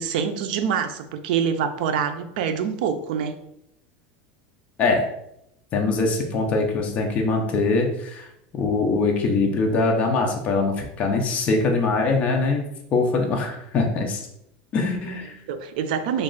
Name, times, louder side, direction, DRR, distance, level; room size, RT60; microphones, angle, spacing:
voice 1, 0.0-3.3 15.5-16.2, right 7 dB, 75° right, 9 dB, 0.4 m, -25 dB
voice 2, 5.7-8.3 8.5-12.6 12.9-14.2 14.7-15.3, left 3 dB, 25° left, 1 dB, 0.5 m, -22 dB
3.1 x 2.4 x 3.8 m, 0.78 s
supercardioid pair, 165°, 5 cm